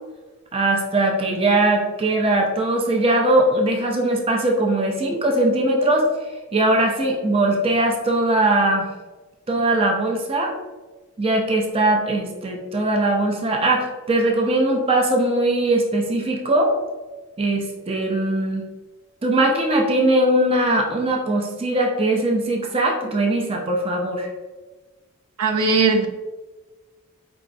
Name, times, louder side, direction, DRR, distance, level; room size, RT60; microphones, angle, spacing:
voice 1, 0.5-6.1 6.5-8.9 9.5-10.5 11.2-16.7 17.4-18.7 19.2-24.3, right 1 dB, 25° right, 1 dB, 0.5 m, -20 dB
voice 2, 25.4-26.1, right 4 dB, 90° right, 5 dB, 0.5 m, -18 dB
4.5 x 3.0 x 2.6 m, 1.2 s
head